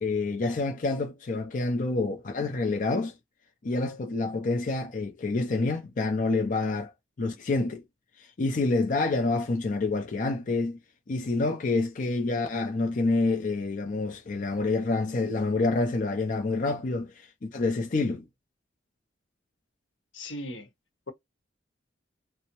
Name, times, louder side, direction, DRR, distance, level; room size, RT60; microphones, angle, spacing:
voice 1, 0.0-3.1 3.6-6.9 7.2-7.8 8.2-10.8 11.1-18.2, left 3 dB, 45° left, 0.4 m, -27 dB
voice 2, 20.1-20.7, left 1 dB, 80° left, 0.9 m, -37 dB
2.6 x 2.0 x 2.9 m
head